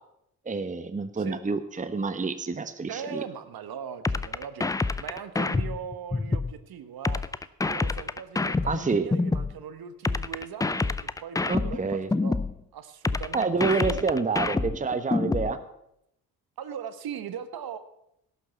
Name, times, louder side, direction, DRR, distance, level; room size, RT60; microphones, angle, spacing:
voice 1, 0.4-3.2 8.7-9.1 11.5-12.1 13.3-15.6, right 4 dB, 15° right, 10 dB, 1.0 m, -28 dB
voice 2, 2.9-4.7 5.0-7.2 7.6-12.4 12.7-14.1 16.6-17.8, right 7 dB, 50° right, 11 dB, 1.2 m, -39 dB
sound 1, 4.0-6.5 7.0-9.5 10.0-12.5 13.0-15.5, left 3 dB, 10° left, 0.4 m, -27 dB
17.0 x 6.9 x 5.9 m, 0.79 s
figure-of-eight pair, 45°, 48 cm